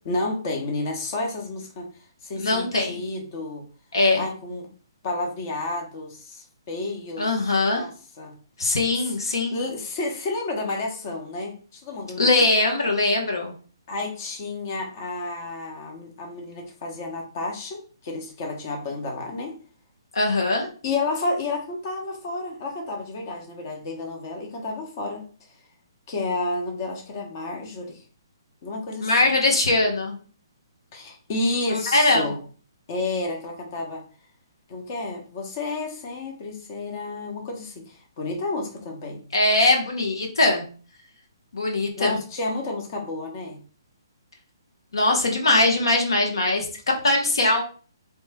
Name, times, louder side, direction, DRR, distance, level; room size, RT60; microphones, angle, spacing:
voice 1, 0.0-1.8 2.2-3.6 4.2-4.7 5.0-7.3 7.7-7.9 8.2-8.3 9.0-9.1 9.5-12.4 13.9-19.6 20.8-25.2 26.1-28.0 28.6-29.1 30.9-32.4 32.9-34.0 34.7-39.2 42.0-43.6, left 2 dB, 40° left, 2 dB, 0.9 m, -31 dB
voice 2, 2.4-3.0 3.9-4.2 7.2-7.9 8.6-9.5 12.2-13.5 20.1-20.7 29.0-30.2 31.7-32.3 39.3-40.6 41.5-42.2 44.9-46.7 47.0-47.6, left 2 dB, 85° left, 2 dB, 0.8 m, -21 dB
2.9 x 2.1 x 3.4 m, 0.40 s
hypercardioid pair, 150°, 2 cm